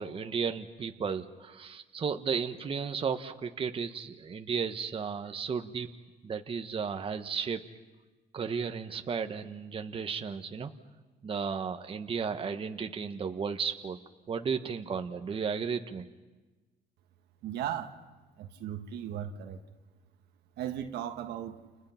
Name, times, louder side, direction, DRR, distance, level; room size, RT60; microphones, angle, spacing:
voice 1, 0.0-5.9 6.2-7.6 8.3-10.7 11.2-14.0 14.3-16.1, right 6 dB, 35° right, 6 dB, 1.2 m, -34 dB
voice 2, 17.4-18.0 18.4-19.6 20.6-21.6, right 10 dB, 80° right, 6 dB, 1.6 m, -36 dB
30.0 x 29.0 x 5.8 m, 1.2 s
cardioid pair, 110°, 17 cm